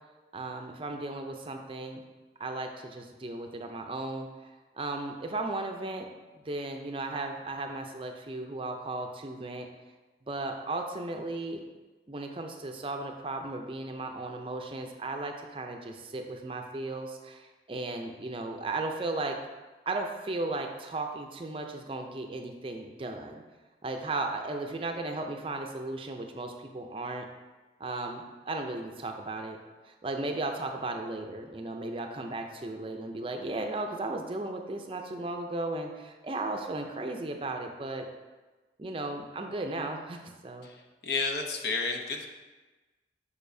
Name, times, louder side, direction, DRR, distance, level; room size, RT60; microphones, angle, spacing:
voice 1, 0.3-2.0 2.4-6.1 6.3-9.7 10.3-11.6 12.1-19.4 19.9-23.4 23.8-27.3 27.8-29.6 29.8-38.1 38.8-40.7, right 2 dB, 30° right, 4 dB, 0.5 m, -35 dB
voice 2, 41.0-42.3, left 4 dB, 65° left, 2 dB, 0.7 m, -31 dB
6.7 x 5.4 x 2.7 m, 1.2 s
head